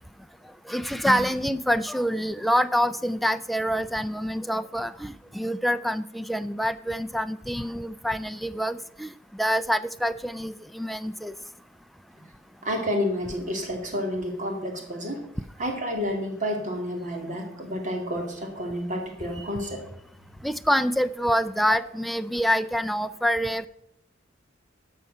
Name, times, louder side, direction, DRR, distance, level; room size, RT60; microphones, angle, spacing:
voice 1, 0.7-11.3 20.4-23.7, equal, ahead, 10 dB, 0.3 m, -26 dB
voice 2, 12.6-15.2 15.6-19.8 21.7-21.8, equal, 40° right, 2 dB, 2.4 m, -30 dB
12.5 x 5.6 x 6.6 m, 0.76 s
head